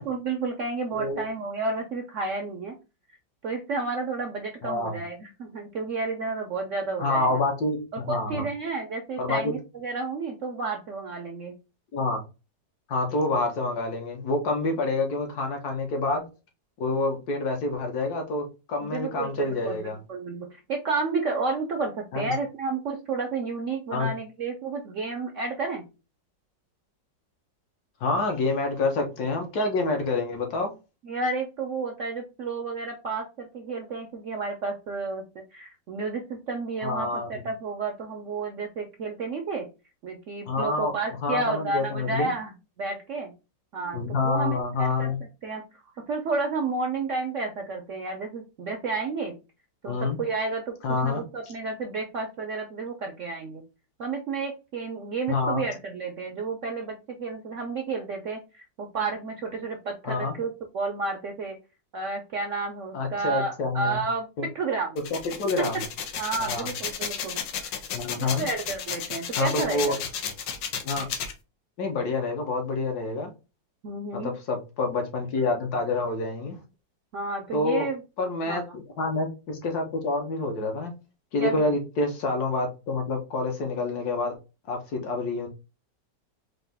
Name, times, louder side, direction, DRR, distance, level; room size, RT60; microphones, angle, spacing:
voice 1, 0.0-2.7 3.4-7.4 7.9-11.5 18.8-25.8 31.0-35.2 35.5-39.6 40.0-42.5 42.8-43.3 43.7-45.1 45.4-45.6 46.1-49.3 49.8-50.7 51.0-53.6 54.0-61.6 61.9-64.3 64.5-65.0 65.6-65.8 66.2-67.8 68.2-70.0 73.8-74.3 77.1-78.0 78.5-78.6 81.4-81.7, right 4 dB, 65° right, 3 dB, 0.7 m, -31 dB
voice 2, 0.9-1.2 4.6-4.9 7.0-8.5 9.2-9.5 11.9-12.2 12.9-16.3 16.8-20.0 22.1-22.3 23.9-24.1 28.0-30.7 36.8-37.3 40.5-40.9 41.2-42.3 43.9-45.2 49.8-50.2 50.8-51.2 55.3-55.6 60.0-60.3 62.9-64.0 64.4-64.5 65.1-65.8 66.4-66.7 67.9-68.5 69.3-70.0 70.8-71.1 71.8-73.3 74.1-76.6 77.5-77.9 78.2-80.9 81.3-84.3 84.7-85.5, left 3 dB, 65° left, 4 dB, 1.3 m, -27 dB
sound 1, 65.0-71.3, left 7 dB, 85° left, 1.4 m, -33 dB
3.9 x 2.6 x 3.4 m, 0.29 s
omnidirectional pair, 1.9 m